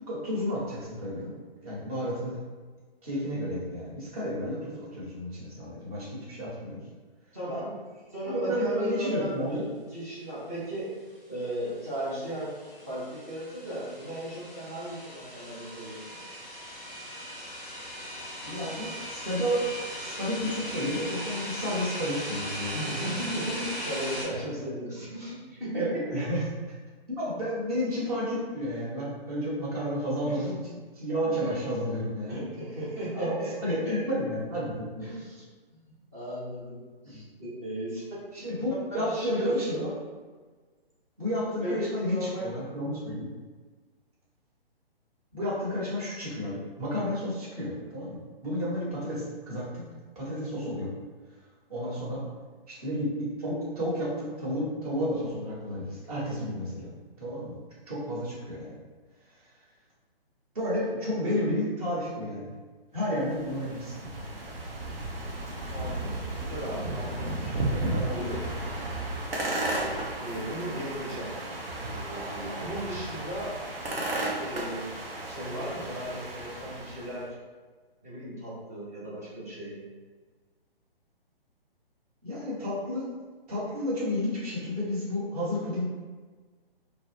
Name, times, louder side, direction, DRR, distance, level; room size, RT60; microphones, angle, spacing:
voice 1, 0.1-1.3 1.6-2.4 3.0-6.8 8.3-9.7 18.4-19.6 19.9-22.9 24.4-24.5 25.7-26.4 27.2-32.4 33.1-35.1 37.0-37.2 38.3-39.9 41.2-43.3 45.3-48.2 48.4-49.8 50.1-50.9 51.7-52.2 52.7-56.9 57.2-57.6 57.9-58.7 60.5-62.5 62.9-64.1 82.2-83.1 83.5-85.8, equal, 40° right, -7 dB, 1.1 m, -31 dB
voice 2, 7.3-7.8 8.1-9.6 9.9-10.9 11.3-12.6 12.9-16.0 22.7-26.2 30.3-30.5 31.3-31.6 32.3-34.1 35.0-35.8 36.1-38.0 38.9-39.9 41.6-42.6 51.8-52.3 65.7-68.5 70.2-71.3 71.7-73.6 74.4-74.9 75.2-77.4 78.0-79.8, right 1 dB, 15° right, -9 dB, 0.4 m, -36 dB
sound 1, 11.7-24.2, equal, 5° left, 0.9 m, -39 dB
sound 2, 63.2-77.2, right 2 dB, 70° right, 0.7 m, -34 dB
2.3 x 2.0 x 3.1 m, 1.4 s
figure-of-eight pair, 135°, 30 cm